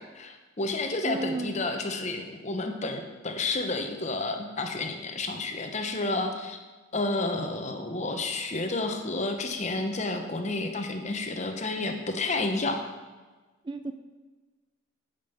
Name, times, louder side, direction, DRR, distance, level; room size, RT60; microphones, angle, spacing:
voice 1, 0.0-6.6 6.9-12.8, left 2 dB, 35° left, 5 dB, 0.8 m, -30 dB
voice 2, 1.0-1.6 13.6-13.9, right 3 dB, 25° right, 8 dB, 0.4 m, -32 dB
8.8 x 5.3 x 7.1 m, 1.3 s
head